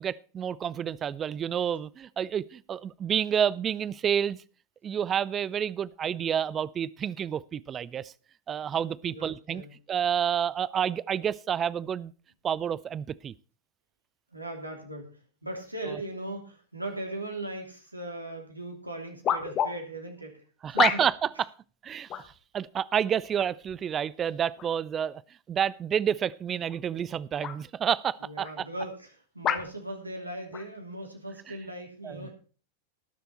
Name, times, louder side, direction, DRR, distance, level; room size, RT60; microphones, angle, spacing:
voice 1, 0.0-4.4 4.8-8.1 8.5-9.6 9.9-12.1 12.4-13.3 15.9-16.0 20.6-21.3 21.8-22.1 22.5-25.2 25.5-28.6 32.0-32.3, right 8 dB, 25° right, 21 dB, 0.5 m, -29 dB
voice 2, 9.0-9.7 14.3-15.1 15.4-20.4 20.7-21.0 28.2-32.3, right 1 dB, 85° right, 2 dB, 3.2 m, -38 dB
sound 1, 18.3-18.4 19.2-19.7 20.8-21.3 22.1-22.4 23.4-23.8 24.6-24.7 26.6-26.8 27.4-27.6 28.4-28.5 29.4-29.7 30.5-30.7, left 9 dB, 30° left, 1.3 m, -28 dB
19.0 x 6.9 x 4.3 m, 0.38 s
figure-of-eight pair, 90°, 0 cm